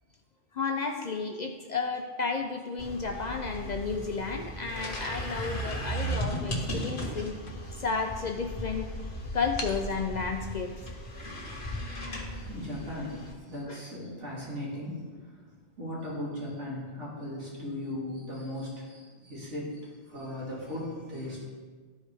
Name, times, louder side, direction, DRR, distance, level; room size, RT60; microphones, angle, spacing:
voice 1, 0.5-7.3 7.8-8.9 9.3-10.7 13.7-13.8, left 4 dB, 60° left, 4 dB, 0.4 m, -32 dB
sound 1, 2.8-13.3, equal, 45° left, 1.7 m, -36 dB
sound 2, 3.5-4.8 5.4-5.6 5.9-6.0 6.3-8.0 8.5-8.6 9.6-9.9, left 3 dB, 80° left, 1.2 m, -43 dB
voice 2, 11.9-15.3 15.8-21.4, left 1 dB, 75° right, -6 dB, 2.3 m, -38 dB
12.5 x 4.7 x 3.4 m, 1.5 s
omnidirectional pair, 1.2 m